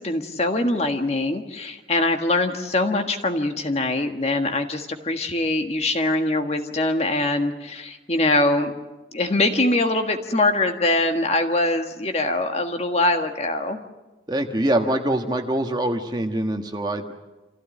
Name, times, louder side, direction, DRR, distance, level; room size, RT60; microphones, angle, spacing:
voice 1, 0.0-8.7 9.1-13.8, left 2 dB, 35° left, 5 dB, 1.6 m, -23 dB
voice 2, 14.3-17.1, right 1 dB, 25° right, 5 dB, 1.5 m, -24 dB
26.5 x 16.0 x 9.1 m, 1.1 s
head